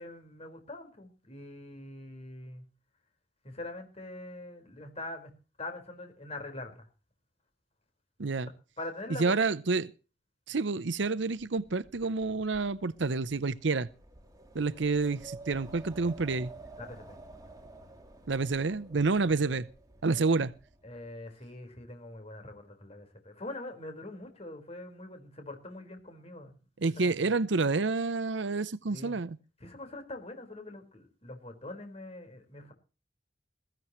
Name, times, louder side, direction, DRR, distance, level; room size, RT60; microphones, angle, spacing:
voice 1, 0.0-2.6 3.4-6.9 8.4-9.6 16.8-17.2 19.3-19.4 20.8-26.5 27.0-27.4 28.9-29.2 29.6-32.7, left 2 dB, 35° left, 4.7 m, -43 dB
voice 2, 8.2-8.5 9.2-9.9 10.5-13.9 14.5-16.5 18.3-19.7 20.0-20.5 26.8-29.4, right 3 dB, 65° right, 0.7 m, -29 dB
Wind, 11.2-21.1, right 2 dB, 20° right, 3.1 m, -51 dB
21.5 x 15.5 x 3.1 m
head